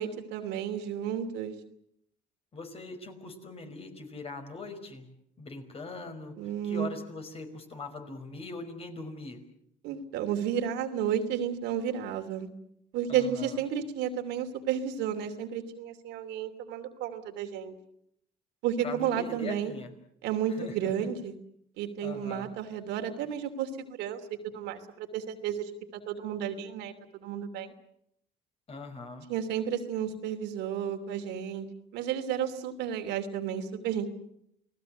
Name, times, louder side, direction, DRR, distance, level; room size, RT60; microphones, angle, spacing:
voice 1, 0.0-1.5 6.4-6.9 9.8-12.5 12.9-17.8 18.6-19.7 20.2-21.3 21.8-25.7 26.1-27.7 29.3-31.7 31.9-34.1, right 9 dB, 90° right, 6 dB, 3.0 m, -32 dB
voice 2, 2.5-5.1 5.4-9.4 13.1-13.6 18.8-19.9 20.5-21.1 22.0-22.6 28.7-29.3, left 3 dB, 35° left, 6 dB, 5.4 m, -41 dB
29.5 x 18.5 x 8.0 m, 0.73 s
cardioid pair, 110°, 17 cm